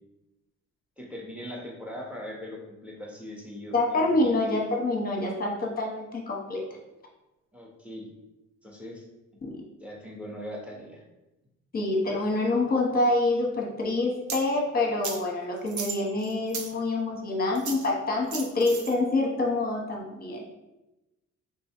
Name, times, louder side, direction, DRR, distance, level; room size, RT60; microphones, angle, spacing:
voice 1, 1.0-4.4 7.5-8.1 8.6-9.1 9.8-11.0, equal, 5° right, -1 dB, 0.8 m, -40 dB
voice 2, 3.7-6.6 9.4-9.6 11.7-20.5, left 2 dB, 30° left, 0 dB, 0.9 m, -26 dB
Coin Interaction, 14.3-14.4 15.0-15.2 15.7-16.7 17.6-17.9 18.3-18.9, right 6 dB, 70° right, 0.6 m, -35 dB
3.6 x 2.2 x 4.3 m, 0.99 s
cardioid pair, 105°, 31 cm